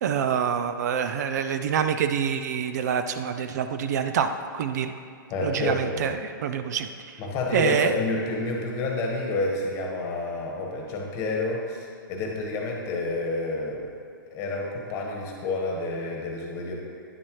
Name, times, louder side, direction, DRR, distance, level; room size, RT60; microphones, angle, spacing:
voice 1, 0.0-4.9 5.4-7.2 7.5-7.9, right 7 dB, 50° right, 9 dB, 0.4 m, -26 dB
voice 2, 5.3-6.0 7.2-13.9 14.3-16.7, left 2 dB, 25° left, -1 dB, 1.4 m, -29 dB
9.9 x 7.3 x 3.2 m, 2.4 s
hypercardioid pair, 145°, 11 cm